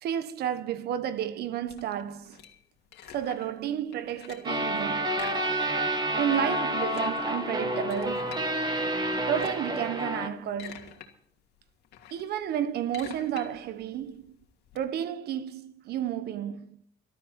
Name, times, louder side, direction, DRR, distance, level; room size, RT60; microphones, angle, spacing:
voice 1, 0.0-2.4 3.1-5.2 6.2-8.4 9.3-11.0 12.1-14.4 14.7-16.8, right 10 dB, 70° right, 1.3 m, -31 dB
sound 1, 1.7-3.6 3.9-4.6 5.1-6.0 6.3-6.4 6.7-8.5 9.1-9.7 10.3-11.1 11.5-14.8, left 10 dB, 80° left, 2.7 m, -47 dB
sound 2, 4.4-10.3, right 1 dB, 25° right, 2.2 m, -29 dB
19.5 x 13.0 x 4.4 m
cardioid pair, 110°, 17 cm